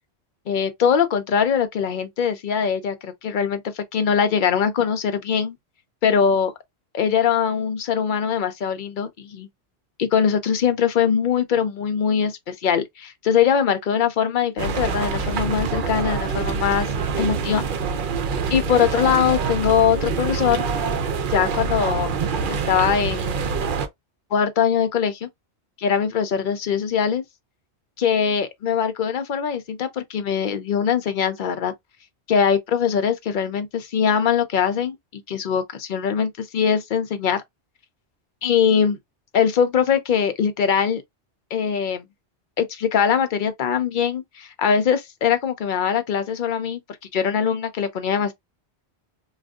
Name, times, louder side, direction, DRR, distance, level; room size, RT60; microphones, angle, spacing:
voice 1, 0.5-5.6 6.0-6.5 6.9-9.5 10.0-16.9 17.2-17.6 18.5-20.6 21.3-22.2 22.5-23.4 24.3-25.3 25.8-27.2 28.0-31.7 32.3-37.4 38.4-39.0 39.3-41.0 41.5-42.1 42.6-46.8 47.1-48.3, left 7 dB, 55° left, 0.7 m, -22 dB
sound 1, 14.6-23.9, right 5 dB, 55° right, 0.6 m, -25 dB
2.6 x 2.3 x 3.5 m
omnidirectional pair, 1.1 m